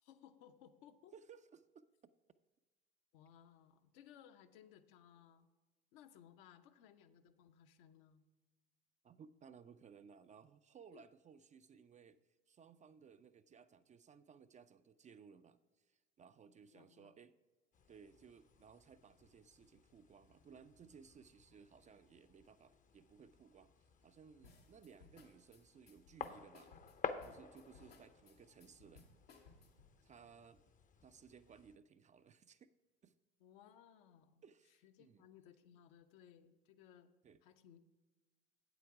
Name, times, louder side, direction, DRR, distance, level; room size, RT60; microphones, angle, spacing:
voice 1, 0.0-1.1 3.1-5.5 5.9-8.3 10.9-11.0 16.7-17.2 27.8-27.9 33.4-34.4 34.8-37.1 37.4-37.8, left 9 dB, 65° left, 8 dB, 0.8 m, -62 dB
voice 2, 1.1-1.8 9.0-12.2 12.5-17.3 17.9-26.7 27.2-29.1 30.0-30.6 31.0-32.7 33.0-33.1 34.4-35.2 37.2-37.4, right 6 dB, 25° right, 11 dB, 0.4 m, -61 dB
sound 1, 17.7-31.8, left 5 dB, 25° left, 0.6 m, -52 dB
sound 2, 24.4-29.9, left 4 dB, 90° left, 1.4 m, -63 dB
8.4 x 8.0 x 4.7 m, 1.2 s
hypercardioid pair, 70°, 29 cm